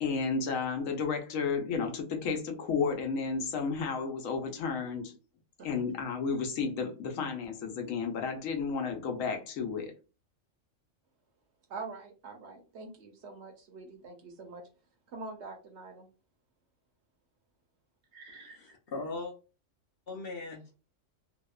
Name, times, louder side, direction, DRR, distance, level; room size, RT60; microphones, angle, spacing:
voice 1, 0.0-5.1 5.6-9.9, left 5 dB, 80° left, 1.0 m, -32 dB
voice 2, 11.7-14.6 15.1-16.1 18.1-18.6, right 3 dB, 65° right, 0.8 m, -45 dB
voice 3, 18.3-19.3 20.1-20.7, left 3 dB, 60° left, 0.6 m, -40 dB
2.8 x 2.0 x 2.2 m
omnidirectional pair, 1.4 m